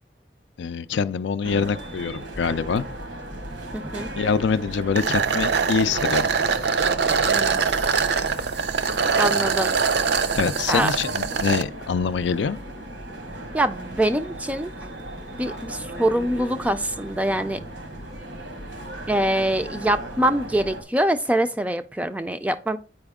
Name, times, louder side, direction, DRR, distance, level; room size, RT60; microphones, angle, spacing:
voice 1, 0.6-2.8 4.2-6.3 10.3-12.6, left 6 dB, 75° left, 0.4 m, -24 dB
sound 1, 1.4-20.8, right 1 dB, 90° right, 1.4 m, -36 dB
voice 2, 3.7-4.1 7.3-7.7 9.2-9.7 10.7-10.9 13.5-14.7 15.4-17.6 19.1-22.8, right 1 dB, 10° right, 0.4 m, -24 dB
sound 2, 5.0-11.6, right 5 dB, 65° right, 0.6 m, -23 dB
8.8 x 4.9 x 3.5 m
head